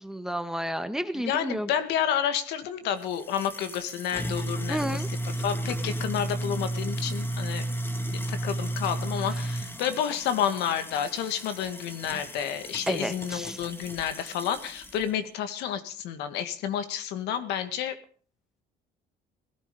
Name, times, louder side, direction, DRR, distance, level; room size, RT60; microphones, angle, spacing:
voice 1, 0.0-1.7 4.7-5.1 12.9-13.6, equal, 5° right, 9 dB, 1.5 m, -31 dB
voice 2, 1.1-5.0 5.4-7.7 8.1-18.0, left 9 dB, 85° left, 9 dB, 2.1 m, -30 dB
sound 1, 3.0-15.0, right 1 dB, 15° left, 2.0 m, -34 dB
17.5 x 13.5 x 5.5 m, 0.44 s
cardioid pair, 110°, 17 cm